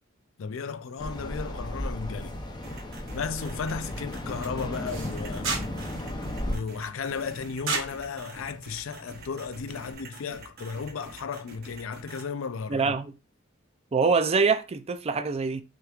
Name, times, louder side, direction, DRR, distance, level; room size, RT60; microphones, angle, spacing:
voice 1, 0.4-2.4 3.1-5.5 6.5-13.0, left 5 dB, 85° left, 0.4 m, -34 dB
sound 1, 1.0-6.6, left 1 dB, 20° left, 0.7 m, -34 dB
sound 2, 2.6-12.2, right 3 dB, 50° right, 1.0 m, -47 dB
sound 3, 3.8-9.9, right 4 dB, 80° right, 1.5 m, -38 dB
voice 2, 12.7-13.1 13.9-15.6, right 4 dB, 30° right, 0.4 m, -24 dB
6.3 x 3.0 x 2.4 m
head